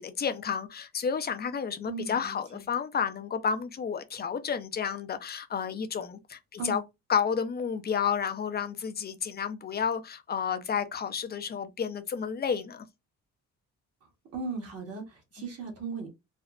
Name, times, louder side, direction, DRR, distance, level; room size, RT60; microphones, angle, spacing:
voice 1, 0.0-6.8 7.1-12.8 15.4-15.5, left 7 dB, 35° left, 0.5 m, -31 dB
voice 2, 1.8-2.6 6.6-6.8 14.3-16.1, right 4 dB, 55° right, 1.4 m, -37 dB
3.5 x 2.1 x 2.4 m
cardioid pair, 90°, 30 cm